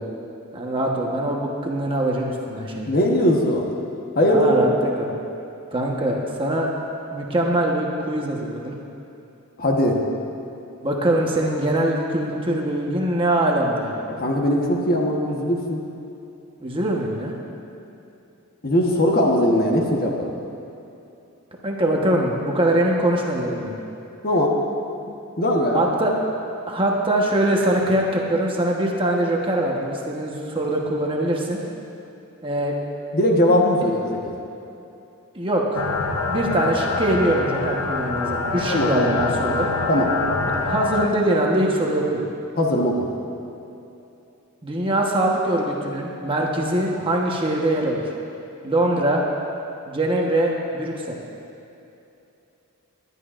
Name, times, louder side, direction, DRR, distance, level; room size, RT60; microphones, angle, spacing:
voice 1, 0.5-3.0 4.2-4.7 5.0-5.1 5.7-6.7 7.1-8.8 10.8-13.9 16.6-17.3 21.6-23.7 25.7-26.1 26.7-31.6 32.4-32.7 35.3-35.8 36.3-39.7 40.6-42.2 44.6-48.0 48.6-49.2 49.9-51.2, right 1 dB, 25° right, -1 dB, 1.2 m, -22 dB
voice 2, 2.9-3.7 4.2-4.6 9.6-10.0 14.2-15.8 18.6-20.4 24.2-24.6 25.1-25.9 33.1-34.3 38.7-38.9 39.9-40.1 42.6-43.1, left 1 dB, 45° left, 0 dB, 1.3 m, -20 dB
sound 1, 35.7-41.1, left 3 dB, 70° left, 0.9 m, -25 dB
20.0 x 11.0 x 2.5 m, 2.8 s
head